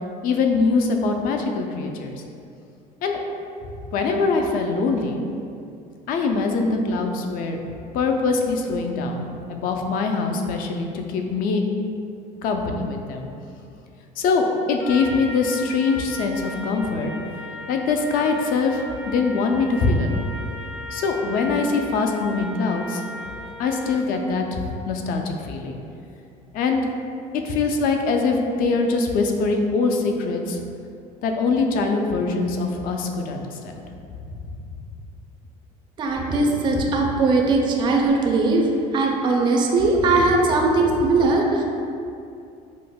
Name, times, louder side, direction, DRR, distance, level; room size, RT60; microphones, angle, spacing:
voice 1, 0.2-2.1 3.0-3.2 3.9-5.2 6.1-7.6 7.9-11.6 12.4-13.3 14.2-17.1 17.7-20.3 20.9-23.0 23.6-25.8 26.5-26.8 27.4-30.6 31.2-33.8 34.2-34.4, left 4 dB, 60° left, 3 dB, 0.4 m, -23 dB
Trumpet, 14.8-24.1, left 1 dB, 85° left, 1.4 m, -37 dB
voice 2, 36.0-41.6, right 3 dB, 30° right, 0 dB, 0.4 m, -20 dB
5.0 x 2.1 x 2.2 m, 2.5 s
cardioid pair, 120°, 16 cm